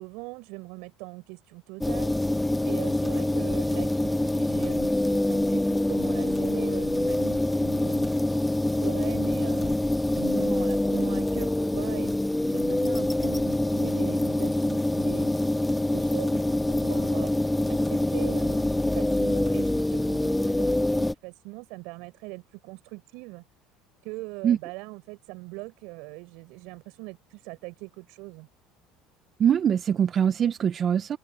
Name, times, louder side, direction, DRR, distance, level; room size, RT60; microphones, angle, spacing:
voice 1, 0.0-8.1 8.7-9.8 10.1-12.2 12.4-15.3 15.9-16.4 16.7-17.3 17.7-23.4 24.0-28.5, right 26 dB, 70° right, 5.4 m, -41 dB
sound 1, 1.8-21.1, left 1 dB, 10° left, 0.7 m, -25 dB
voice 2, 29.4-31.2, right 8 dB, 40° right, 1.2 m, -23 dB
hypercardioid pair, 80°, 0 cm